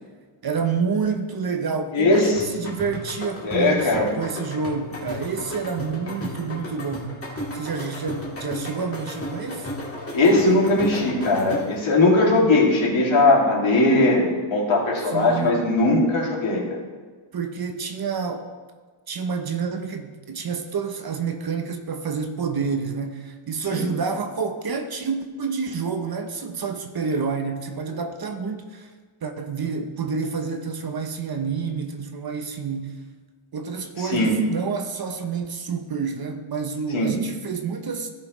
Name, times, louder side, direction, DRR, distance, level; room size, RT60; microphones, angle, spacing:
voice 1, 0.4-7.2 7.5-9.7 15.1-15.6 17.3-18.5 19.1-28.9 29.2-33.0 33.5-38.1, right 5 dB, 50° right, 6 dB, 0.8 m, -28 dB
voice 2, 1.9-2.5 3.4-4.1 10.1-16.6 23.7-23.9 34.0-34.4 36.9-37.1, left 2 dB, 70° left, -4 dB, 2.4 m, -19 dB
sound 1, 2.4-11.9, left 1 dB, 25° left, 1.9 m, -34 dB
16.0 x 5.6 x 3.1 m, 1.4 s
wide cardioid pair, 175°, 50 cm